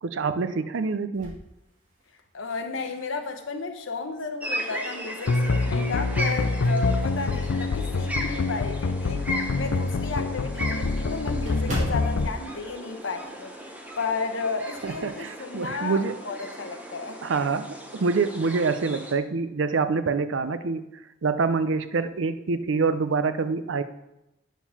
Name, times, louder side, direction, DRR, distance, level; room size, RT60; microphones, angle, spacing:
voice 1, 0.0-1.4 14.8-16.1 17.2-20.8 21.2-23.8, right 4 dB, 70° right, 12 dB, 0.5 m, -26 dB
sound 1, 1.1-2.5 3.0-3.1 4.6-5.1 5.6-8.2 8.6-8.8 9.1-9.2 9.5-9.6 9.9-13.7 13.9-14.1 14.5-15.1, equal, 40° right, 2.4 m, -39 dB
voice 2, 2.3-9.3 9.5-13.5 14.0-17.2, left 4 dB, 75° left, 6 dB, 0.9 m, -33 dB
sound 2, 4.4-19.1, equal, 10° right, 0.8 m, -37 dB
sound 3, 5.3-12.3, left 3 dB, 90° left, 0.5 m, -26 dB
9.1 x 4.5 x 5.7 m, 0.91 s
head